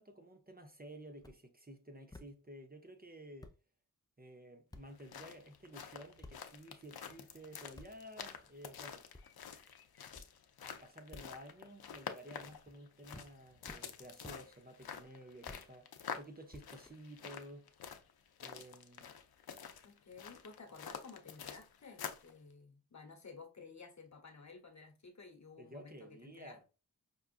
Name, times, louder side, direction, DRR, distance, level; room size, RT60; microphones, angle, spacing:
voice 1, 0.0-3.5 4.2-9.1 10.6-17.7 18.4-19.1 25.6-26.6, right 1 dB, 25° right, 0.7 m, -53 dB
sound 1, 1.2-1.4 2.1-2.3 3.0-3.1 3.4-3.6 4.7-4.8 6.2-6.4 7.8-7.9 9.1-9.3 10.1-10.3 11.1-11.2 12.4-12.8 13.1-13.3 13.7-13.8 14.2-14.4 15.4-15.6 16.5-17.2, left 2 dB, 10° left, 0.4 m, -52 dB
sound 2, 4.9-22.3, left 7 dB, 90° left, 0.5 m, -48 dB
voice 2, 19.8-26.6, left 4 dB, 50° left, 1.1 m, -54 dB
5.3 x 2.4 x 2.4 m
wide cardioid pair, 70°, 36 cm